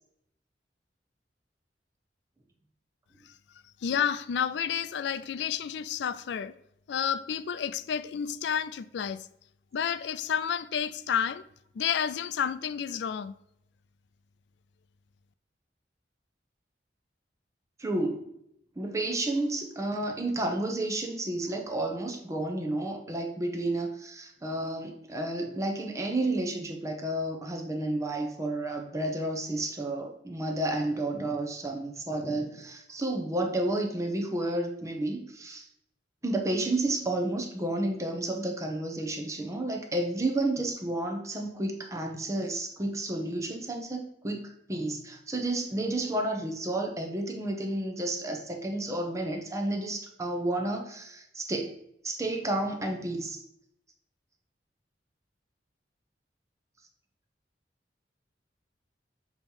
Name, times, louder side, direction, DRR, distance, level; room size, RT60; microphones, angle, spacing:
voice 1, 3.8-6.5 6.9-9.3 9.7-11.4 11.8-13.4, left 8 dB, 70° left, 0.4 m, -30 dB
voice 2, 17.8-18.3 18.8-35.7 36.2-51.7 52.0-53.4, right 1 dB, 20° right, 0.7 m, -31 dB
6.9 x 3.0 x 5.4 m
head